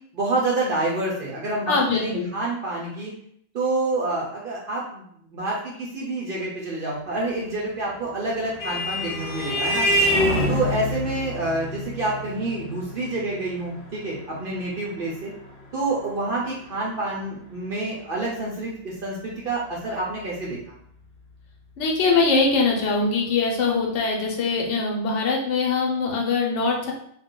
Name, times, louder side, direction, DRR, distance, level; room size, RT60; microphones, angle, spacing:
voice 1, 0.1-3.1 3.5-5.0 5.3-9.9 10.5-15.3 15.7-20.6, right 2 dB, 55° right, -4 dB, 0.8 m, -28 dB
voice 2, 1.7-2.3 21.8-26.9, left 4 dB, 75° left, -1 dB, 1.0 m, -22 dB
Vehicle horn car horn honking, 8.0-17.0, equal, 50° left, 0.7 m, -27 dB
2.4 x 2.2 x 3.6 m, 0.67 s
omnidirectional pair, 1.2 m